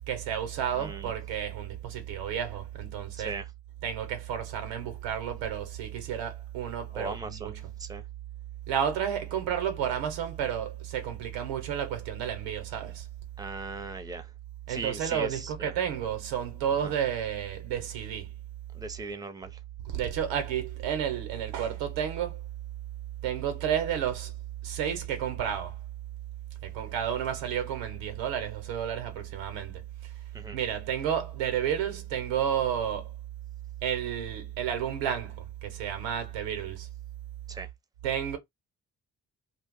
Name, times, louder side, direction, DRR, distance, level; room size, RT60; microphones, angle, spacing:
voice 1, 0.1-3.4 3.8-7.7 8.7-13.1 14.7-18.3 19.8-22.4 23.2-24.3 24.6-25.8 26.6-30.1 30.5-33.1 33.8-36.9 38.0-38.4, right 9 dB, 80° right, 0.9 m, -31 dB
voice 2, 0.8-1.1 3.2-3.5 6.9-7.5 7.8-8.0 13.4-14.3 14.7-15.7 16.8-16.9 18.7-19.5 30.3-30.6 37.5-37.7, right 3 dB, 10° right, 0.7 m, -38 dB
2.4 x 2.3 x 3.6 m
hypercardioid pair, 40°, 44 cm